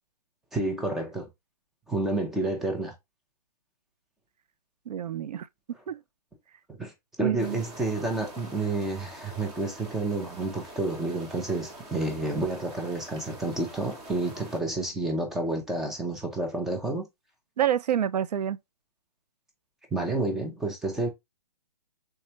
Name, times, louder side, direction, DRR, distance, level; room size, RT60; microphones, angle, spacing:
voice 1, 0.5-1.3 1.9-2.9 6.7-6.9 7.2-17.0 19.9-21.1, right 2 dB, ahead, 0.3 m, -30 dB
voice 2, 4.9-5.5 5.9-6.0 7.2-7.6 17.6-18.6, right 10 dB, 80° right, 0.4 m, -27 dB
sound 1, 7.4-14.6, right 1 dB, 15° right, 0.7 m, -45 dB
3.5 x 3.2 x 2.8 m
hypercardioid pair, 150°, 20 cm